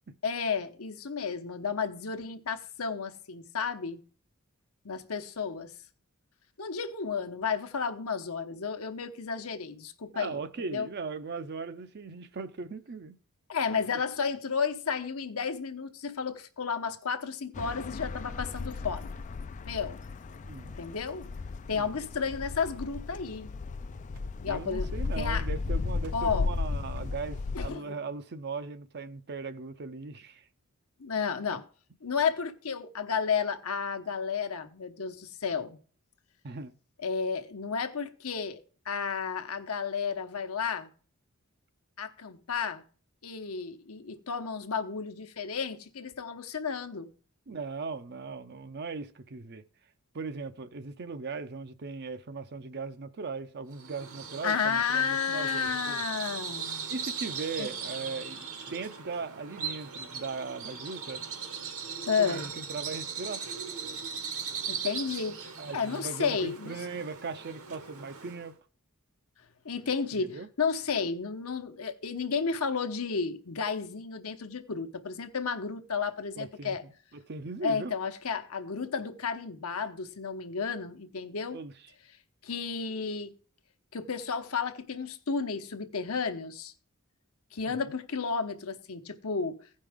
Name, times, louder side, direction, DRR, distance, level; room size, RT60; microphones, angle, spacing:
voice 1, 0.2-4.0 4.8-5.7 6.6-10.9 13.5-19.2 19.6-20.0 20.8-21.3 21.7-23.5 24.4-24.9 25.2-25.5 26.1-26.5 27.5-28.0 31.0-31.6 32.0-35.8 37.0-38.6 38.8-40.9 42.0-42.8 43.2-47.1 54.4-56.9 57.6-57.7 62.1-62.4 64.7-65.4 65.7-66.8 69.6-76.8 77.6-81.6 82.4-83.3 83.9-86.7 87.5-89.6, left 5 dB, 70° left, 1.0 m, -32 dB
voice 2, 10.1-13.2 20.4-20.7 21.7-22.0 24.5-30.4 36.4-36.7 47.5-49.6 50.1-56.0 56.9-61.2 62.2-63.4 65.6-68.6 70.2-70.5 76.4-77.9 81.5-81.7 87.8-87.9, right 4 dB, 50° right, 0.6 m, -39 dB
sound 1, 17.5-27.7, left 4 dB, 35° left, 0.3 m, -35 dB
sound 2, 23.9-24.7 25.0-25.6 26.0-26.4 26.9-27.3, equal, 85° right, 2.7 m, -57 dB
Bird vocalization bird call bird song, 53.7-68.5, right 6 dB, 65° right, 1.3 m, -39 dB
16.0 x 5.3 x 3.5 m
head